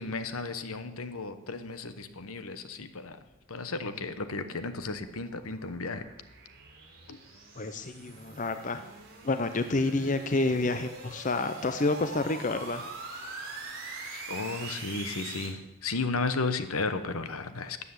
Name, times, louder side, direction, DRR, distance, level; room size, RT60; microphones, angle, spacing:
voice 1, 0.0-3.2 3.5-6.0 7.1-7.2 13.8-17.8, left 3 dB, 75° left, 11 dB, 1.0 m, -34 dB
sound 1, 4.8-15.5, right 3 dB, 45° right, 4.5 m, -44 dB
voice 2, 7.6-8.8 9.2-12.9, left 2 dB, 35° left, 9 dB, 0.6 m, -29 dB
12.5 x 8.4 x 8.1 m, 0.97 s
head